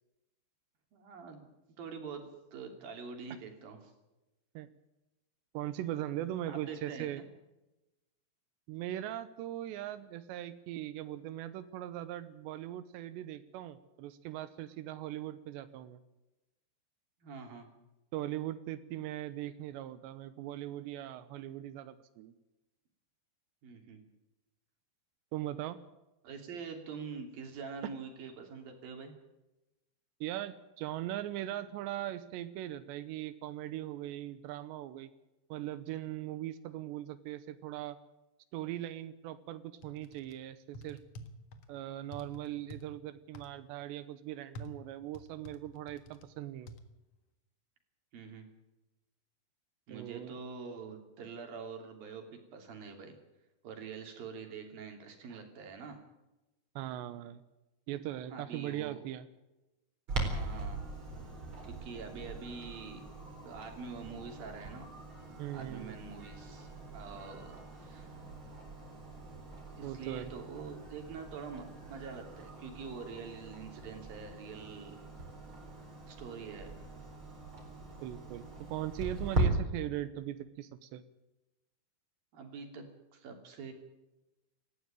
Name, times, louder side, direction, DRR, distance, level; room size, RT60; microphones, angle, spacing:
voice 1, 0.9-1.5 1.8-3.8 6.5-7.2 17.2-17.7 23.6-24.0 26.2-29.1 48.1-48.5 49.9-53.2 53.6-56.0 58.3-59.0 60.3-60.8 61.6-63.1 63.4-64.9 65.5-68.2 69.8-75.0 76.1-76.8 82.3-82.9 83.1-83.7, right 5 dB, 60° right, 4 dB, 4.5 m, -45 dB
voice 2, 5.5-7.2 8.7-16.0 18.1-22.4 25.3-25.8 27.8-27.9 30.2-35.1 35.5-38.0 38.5-41.0 41.7-46.7 49.9-50.3 55.3-55.4 56.8-57.4 57.9-59.3 65.4-66.0 69.8-70.3 78.0-81.0, right 13 dB, 85° right, 13 dB, 3.1 m, -40 dB
sound 1, 39.8-40.4 40.7-41.7 42.1-42.8 43.3-43.5 44.5-46.3 46.7-46.8, equal, 55° left, 1.9 m, -48 dB
Clock, 60.1-79.5, right 2 dB, 30° right, 4.8 m, -41 dB
19.5 x 15.0 x 9.0 m, 0.99 s
omnidirectional pair, 4.9 m